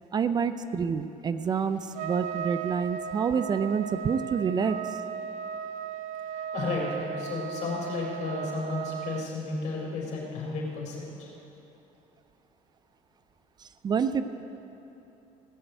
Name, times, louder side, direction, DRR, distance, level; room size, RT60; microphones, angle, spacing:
voice 1, 0.1-4.8 13.8-14.2, right 6 dB, 30° right, 11 dB, 0.5 m, -27 dB
Trumpet, 1.9-9.3, right 8 dB, 70° right, 0.7 m, -36 dB
voice 2, 6.3-11.3, left 3 dB, 65° left, -2 dB, 4.1 m, -33 dB
16.5 x 7.8 x 8.0 m, 2.9 s
cardioid pair, 130°, 13 cm